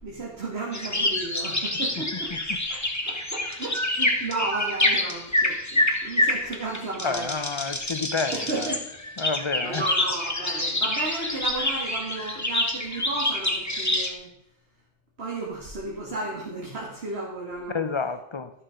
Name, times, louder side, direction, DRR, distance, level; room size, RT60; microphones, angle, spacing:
voice 1, 0.0-2.3 2.7-7.3 7.6-7.9 8.3-8.8 9.6-14.3 15.2-17.8, right 2 dB, 90° right, -3 dB, 2.1 m, -34 dB
sound 1, 0.7-14.1, left 1 dB, 15° left, 1.2 m, -27 dB
voice 2, 7.0-8.4 9.2-9.8 17.7-18.5, left 4 dB, 35° left, 11 dB, 0.6 m, -29 dB
12.5 x 6.6 x 5.0 m, 0.78 s
omnidirectional pair, 1.0 m